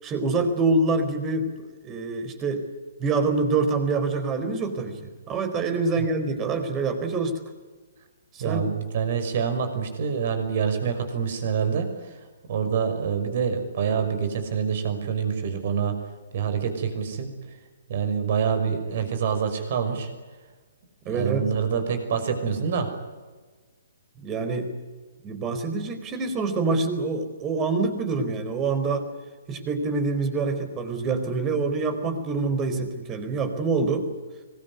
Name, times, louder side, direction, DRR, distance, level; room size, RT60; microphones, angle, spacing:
voice 1, 0.0-1.5 1.8-2.6 3.0-5.0 5.3-7.4 8.3-8.7 21.0-21.5 24.2-24.7 25.2-29.1 29.5-34.1, right 3 dB, 20° right, 8 dB, 4.4 m, -26 dB
voice 2, 8.4-12.1 12.5-16.0 16.3-17.3 17.9-20.1 21.0-22.9, right 6 dB, 45° right, 7 dB, 5.9 m, -26 dB
25.5 x 21.0 x 9.7 m, 1.4 s
figure-of-eight pair, 125°, 0 cm